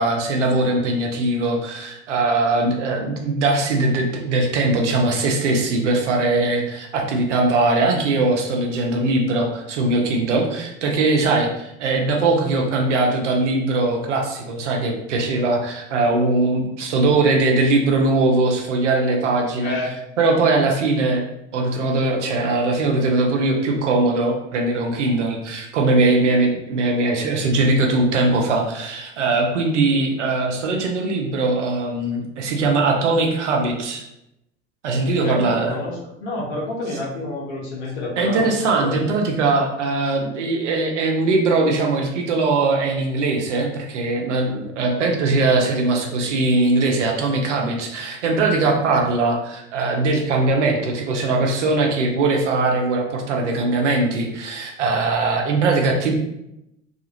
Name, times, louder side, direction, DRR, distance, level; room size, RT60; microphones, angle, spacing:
voice 1, 0.0-19.7 20.2-21.2 21.5-34.0 34.8-35.8 38.2-56.1, right 2 dB, 70° right, 1 dB, 0.6 m, -20 dB
voice 2, 19.6-19.9 35.2-35.9 36.2-38.5 38.8-39.0, left 2 dB, 60° left, -3 dB, 1.0 m, -28 dB
2.4 x 2.4 x 2.9 m, 0.86 s
figure-of-eight pair, 70°, 37 cm